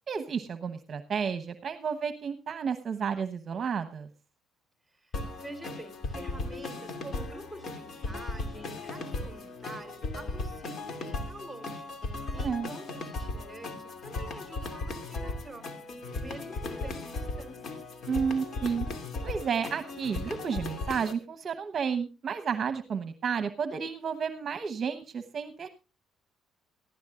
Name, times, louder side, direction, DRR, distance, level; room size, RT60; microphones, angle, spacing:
voice 1, 0.1-4.1 12.3-12.7 18.1-18.9 19.2-25.7, right 6 dB, 45° right, 1.0 m, -31 dB
voice 2, 4.9-11.9 12.3-15.8 16.1-17.8, right 1 dB, 5° right, 3.8 m, -46 dB
sound 1, 5.1-21.1, left 2 dB, 50° left, 2.6 m, -37 dB
18.5 x 14.5 x 2.5 m
cardioid pair, 105°, 0 cm